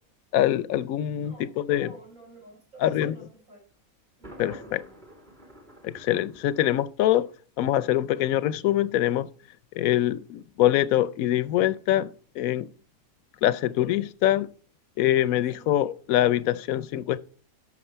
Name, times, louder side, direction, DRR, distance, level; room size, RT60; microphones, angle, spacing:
voice 1, 0.3-1.9 2.8-3.1 4.4-4.8 5.8-7.3 7.6-9.3 9.7-12.7 13.4-14.5 15.0-17.2, left 13 dB, 80° left, 1.1 m, -24 dB
voice 2, 1.0-1.6 1.8-3.6 4.2-5.0 13.5-13.6 15.5-15.7, right 2 dB, 65° right, 5.8 m, -50 dB
Thunder, 4.2-7.2, equal, 30° right, 2.8 m, -47 dB
12.0 x 6.6 x 4.4 m
omnidirectional pair, 1.5 m